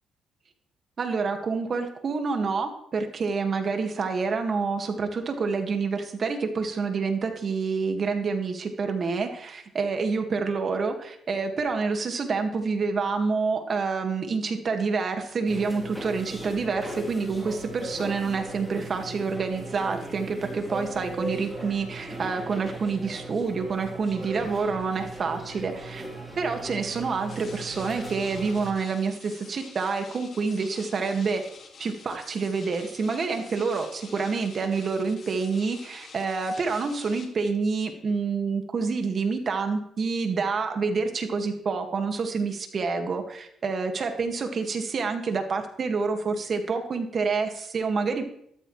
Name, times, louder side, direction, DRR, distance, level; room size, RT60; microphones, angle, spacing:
voice 1, 1.0-26.0 26.4-31.4 31.8-48.3, right 4 dB, 45° right, 5 dB, 1.9 m, -28 dB
sound 1, 15.5-28.7, right 2 dB, ahead, 3.4 m, -38 dB
sound 2, 27.3-37.3, left 5 dB, 50° left, 2.2 m, -48 dB
13.5 x 12.5 x 3.3 m, 0.72 s
cardioid pair, 90°, 0 cm